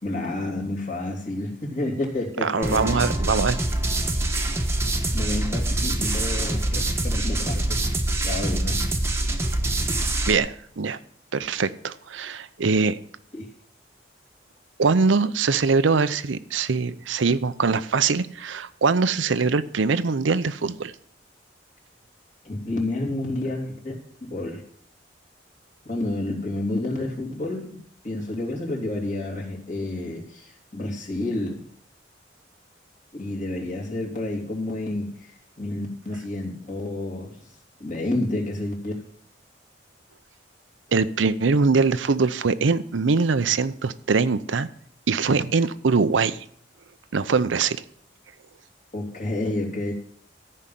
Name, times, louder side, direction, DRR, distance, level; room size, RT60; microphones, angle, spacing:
voice 1, 0.0-3.0 5.1-7.8 8.2-8.8 13.3-13.4 22.4-24.0 24.2-24.6 25.8-27.8 28.0-31.6 33.1-37.3 37.8-39.0 48.9-49.9, left 2 dB, 40° left, -1 dB, 2.9 m, -30 dB
voice 2, 2.4-3.6 10.3-11.0 11.3-13.0 14.8-20.9 40.9-44.7 45.1-46.4 47.1-47.8, right 4 dB, 85° right, 13 dB, 0.6 m, -22 dB
sound 1, 2.6-10.4, right 1 dB, 15° right, 1.1 m, -25 dB
14.0 x 5.5 x 7.6 m, 0.62 s
head